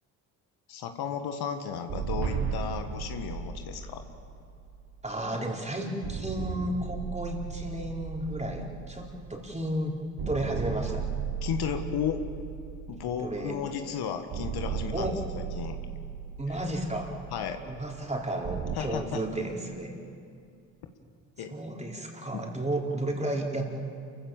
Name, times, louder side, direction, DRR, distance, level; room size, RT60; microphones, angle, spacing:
voice 1, 0.7-4.0 11.4-12.2 12.9-15.8 17.3-17.6 18.7-19.2 21.4-21.5 22.3-22.4, left 7 dB, 65° left, 6 dB, 1.7 m, -34 dB
sound 1, 1.9-5.5 6.0-9.8 10.2-13.8 14.3-18.8, right 7 dB, 60° right, 1.6 m, -36 dB
voice 2, 5.0-10.0 10.3-11.1 13.0-13.6 14.9-15.2 16.4-17.2 17.7-20.0 21.5-23.7, right 1 dB, 15° right, 0 dB, 4.3 m, -33 dB
28.5 x 15.5 x 7.3 m, 2.4 s
hypercardioid pair, 55°, 41 cm